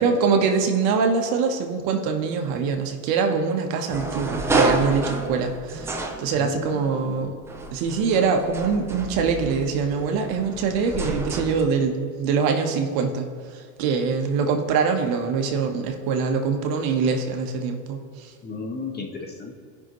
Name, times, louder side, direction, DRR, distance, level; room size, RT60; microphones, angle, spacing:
voice 1, 0.0-7.3 7.7-18.3, right 5 dB, 50° right, 4 dB, 1.2 m, -24 dB
sound 1, 3.9-6.8 7.4-11.6, right 2 dB, 5° right, 0.3 m, -29 dB
voice 2, 6.4-7.3 18.4-19.5, left 4 dB, 20° left, 2 dB, 1.2 m, -34 dB
17.0 x 5.7 x 3.1 m, 2.1 s
supercardioid pair, 120°, 46 cm